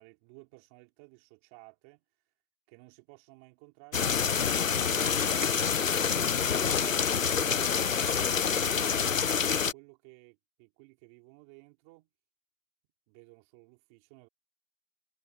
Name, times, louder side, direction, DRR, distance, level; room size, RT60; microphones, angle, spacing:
voice 1, 0.0-2.0 2.7-6.6 7.3-12.1 13.1-14.3, right 26 dB, 10° right, 5.0 m, -55 dB
sound 1, 3.9-9.7, left 6 dB, 60° left, 0.8 m, -27 dB
hypercardioid pair, 175°, 43 cm